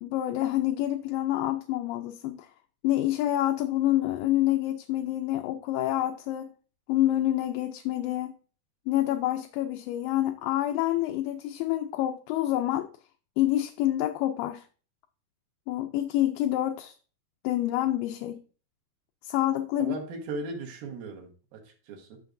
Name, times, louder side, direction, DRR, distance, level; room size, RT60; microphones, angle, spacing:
voice 1, 0.0-2.5 2.8-6.5 6.9-8.3 8.9-12.9 13.4-14.7 15.7-17.0 17.4-18.4 19.2-19.9, left 14 dB, 80° left, 2.2 m, -27 dB
voice 2, 19.8-22.2, right 3 dB, 75° right, 3.0 m, -38 dB
11.5 x 6.4 x 2.6 m
omnidirectional pair, 4.4 m